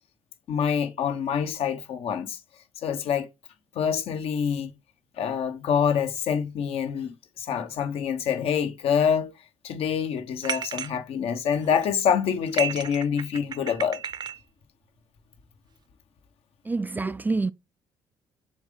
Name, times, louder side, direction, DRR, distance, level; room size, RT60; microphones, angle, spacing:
voice 1, 0.5-2.4 2.8-3.3 3.7-4.7 5.2-9.3 9.6-14.0, left 7 dB, 70° left, 1.1 m, -26 dB
sound 1, 10.4-10.9 11.5-11.9 12.4-14.4, right 8 dB, 40° right, 0.7 m, -33 dB
voice 2, 16.7-17.5, right 3 dB, 15° right, 0.4 m, -27 dB
7.1 x 3.7 x 3.8 m
cardioid pair, 85°, 11 cm